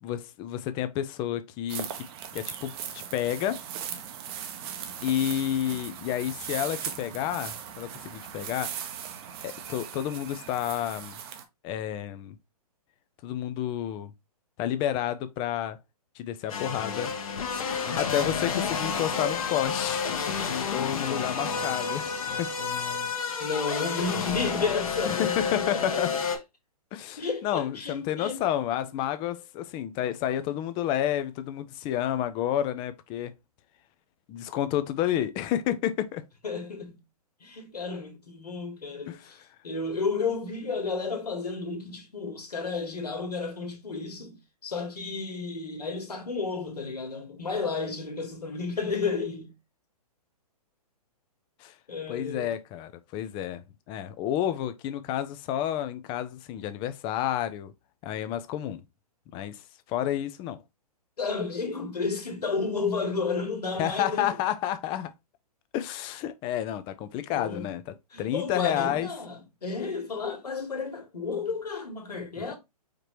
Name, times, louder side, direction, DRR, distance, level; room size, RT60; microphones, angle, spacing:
voice 1, 0.0-1.9 2.3-3.6 5.0-8.7 9.4-11.1 11.6-12.4 13.2-14.1 14.6-15.8 16.2-17.1 18.0-20.0 20.4-22.5 25.0-26.1 26.9-33.3 34.3-36.2 39.1-39.4 51.6-51.7 52.1-57.7 58.0-58.8 59.3-59.6 59.9-60.6 63.8-65.1 65.7-69.1, left 11 dB, 25° left, 0.5 m, -30 dB
sound 1, 1.7-11.4, right 9 dB, 40° right, 0.8 m, -39 dB
sound 2, 16.5-26.4, left 6 dB, 60° left, 1.1 m, -30 dB
voice 2, 20.9-21.7 22.1-23.1 23.4-26.0 27.2-28.4 36.4-37.0 37.4-39.4 39.6-49.5 51.9-52.5 61.2-64.4 67.3-67.7 68.1-72.6, left 4 dB, 85° left, 1.7 m, -32 dB
5.0 x 2.9 x 3.2 m
hypercardioid pair, 130°, 20 cm